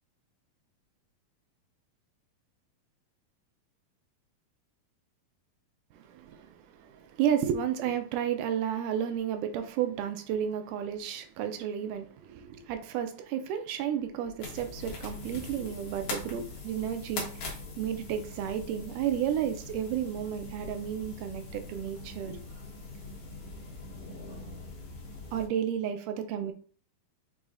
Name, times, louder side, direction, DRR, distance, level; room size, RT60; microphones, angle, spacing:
voice 1, 5.9-22.4 25.3-26.5, right 9 dB, 80° right, 1.9 m, -32 dB
sound 1, 14.4-25.5, left 3 dB, 60° left, 1.6 m, -42 dB
6.2 x 3.0 x 2.5 m
omnidirectional pair, 4.0 m